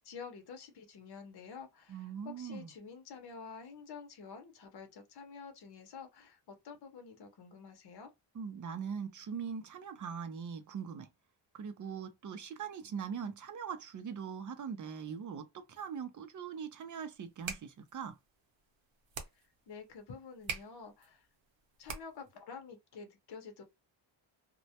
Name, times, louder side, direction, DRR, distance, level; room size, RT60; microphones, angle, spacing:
voice 1, 0.0-8.1 19.3-21.3 21.8-23.6, left 5 dB, 55° left, 0.7 m, -49 dB
voice 2, 1.9-2.7 8.3-11.1 11.5-18.2, right 7 dB, 40° right, 0.4 m, -41 dB
sound 1, 17.2-22.4, right 5 dB, 75° right, 0.8 m, -46 dB
2.1 x 2.1 x 2.7 m
wide cardioid pair, 160°, 47 cm